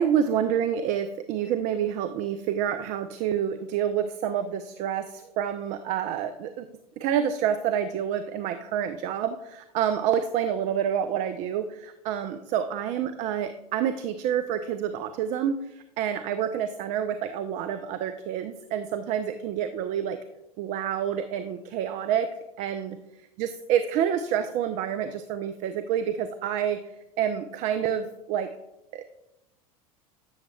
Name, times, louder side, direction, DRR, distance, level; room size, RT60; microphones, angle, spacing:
voice 1, 0.0-6.7 7.0-20.2 20.6-22.3 22.6-23.0 23.4-28.5 28.9-29.0, right 9 dB, 40° right, 10 dB, 0.4 m, -28 dB
7.9 x 7.0 x 2.2 m, 0.92 s
figure-of-eight pair, 80°, 19 cm